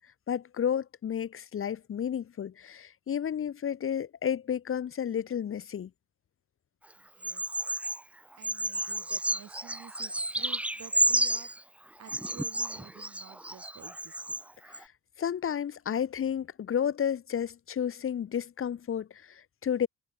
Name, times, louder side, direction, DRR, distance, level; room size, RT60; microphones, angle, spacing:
voice 1, 0.3-5.9 14.8-14.9 15.2-19.9, left 8 dB, 45° left, 1.0 m, -32 dB
voice 2, 7.0-7.7 8.4-11.5 12.0-14.4, right 9 dB, 60° right, 6.5 m, -51 dB
Bird vocalization bird call bird song, 7.2-8.0 8.4-11.6 12.1-14.4 14.7-14.8, right 1 dB, 5° right, 0.6 m, -31 dB
cardioid pair, 90°, 30 cm